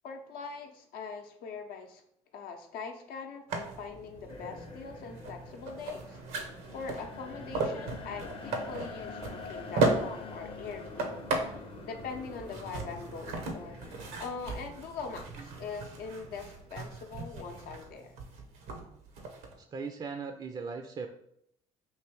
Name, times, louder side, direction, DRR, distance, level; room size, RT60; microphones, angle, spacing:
voice 1, 0.0-2.0 2.3-6.2 6.7-18.1, left 5 dB, 70° left, 4 dB, 0.7 m, -42 dB
sound 1, 3.5-19.5, right 3 dB, 80° right, 0.8 m, -36 dB
sound 2, 4.3-14.2, left 4 dB, 35° left, 0.7 m, -46 dB
voice 2, 19.7-21.1, right 5 dB, 30° right, 6 dB, 0.4 m, -38 dB
3.2 x 2.7 x 4.5 m, 0.73 s
supercardioid pair, 70°, 16 cm